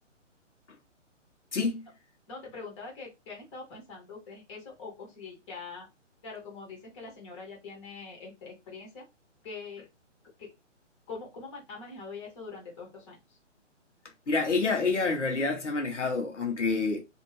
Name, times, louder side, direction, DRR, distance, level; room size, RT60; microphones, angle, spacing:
voice 1, 1.5-1.9 14.3-17.0, left 4 dB, 70° left, 0.9 m, -28 dB
voice 2, 2.3-5.9 6.2-9.0 9.4-9.9 10.4-10.5 11.1-13.4, left 4 dB, 25° left, 1.2 m, -43 dB
2.6 x 2.5 x 3.2 m
figure-of-eight pair, 135°, 38 cm